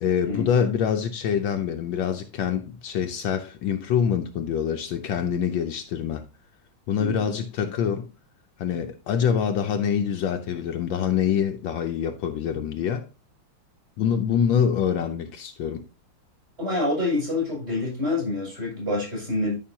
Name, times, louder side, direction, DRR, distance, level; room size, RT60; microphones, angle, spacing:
voice 1, 0.0-6.3 6.9-8.1 8.6-13.1 14.0-15.8, left 8 dB, 70° left, 1.3 m, -25 dB
voice 2, 7.0-7.3 16.6-19.5, left 2 dB, 30° right, 6.3 m, -27 dB
13.0 x 5.7 x 2.7 m
omnidirectional pair, 2.3 m